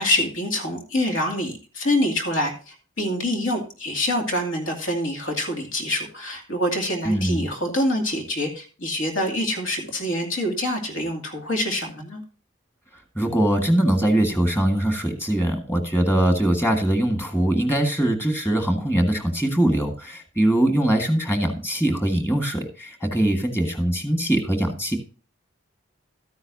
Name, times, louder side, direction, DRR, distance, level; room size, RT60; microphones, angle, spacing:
voice 1, 0.0-12.2, left 1 dB, 75° left, 3 dB, 2.4 m, -26 dB
voice 2, 7.0-7.5 13.1-25.0, right 1 dB, 10° left, 4 dB, 1.6 m, -22 dB
13.0 x 9.6 x 2.7 m, 0.35 s
head